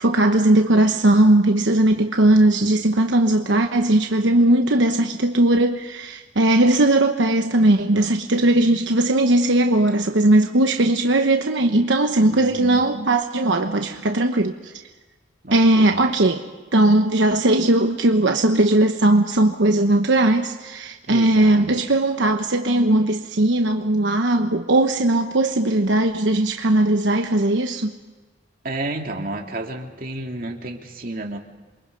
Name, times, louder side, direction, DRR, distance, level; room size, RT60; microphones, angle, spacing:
voice 1, 0.0-14.7 15.5-16.4 16.7-28.0, right 1 dB, 85° right, 4 dB, 1.1 m, -18 dB
voice 2, 12.3-12.8 15.4-15.9 21.1-21.7 28.6-31.4, right 2 dB, 50° right, 2 dB, 2.5 m, -31 dB
28.0 x 23.0 x 5.3 m, 1.2 s
head